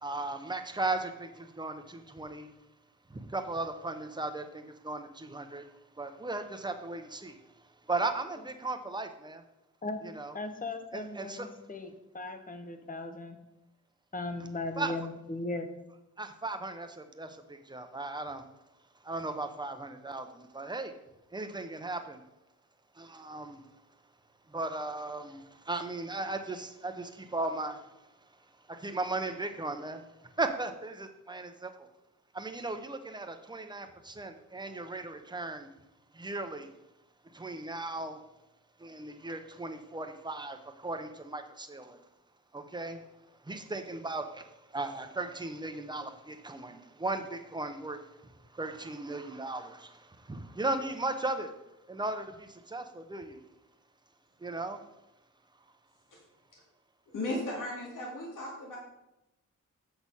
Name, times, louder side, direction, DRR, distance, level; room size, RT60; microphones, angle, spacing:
voice 1, 0.0-2.5 3.1-7.4 7.9-9.4 10.0-10.3 10.9-11.5 14.8-14.9 16.2-18.4 19.0-21.0 21.3-22.2 22.9-23.7 24.5-28.1 28.7-31.9 32.3-35.7 36.1-36.7 37.3-38.2 38.8-42.0 42.5-43.0 43.4-51.6 51.9-53.4 54.4-54.9, right 2 dB, 15° right, 7 dB, 0.7 m, -37 dB
voice 2, 10.3-13.4 14.1-15.7, left 2 dB, 25° left, 7 dB, 0.9 m, -37 dB
voice 3, 57.1-58.8, left 1 dB, 85° left, -3 dB, 2.4 m, -35 dB
7.7 x 6.4 x 5.5 m, 0.92 s
wide cardioid pair, 160°, 31 cm